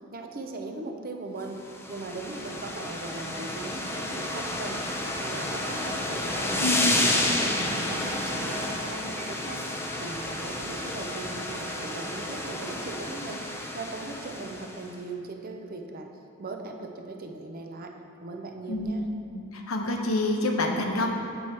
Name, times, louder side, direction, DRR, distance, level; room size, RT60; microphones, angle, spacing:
voice 1, 0.0-1.6 1.9-6.7 7.0-16.1 16.4-17.9 18.2-19.1, right 3 dB, 45° right, 3 dB, 0.6 m, -39 dB
sound 1, 1.6-14.8, left 1 dB, 10° left, 0.5 m, -31 dB
voice 2, 6.6-7.1 18.7-18.9 19.5-21.1, left 1 dB, 75° left, 2 dB, 0.8 m, -27 dB
7.7 x 4.6 x 4.3 m, 2.5 s
head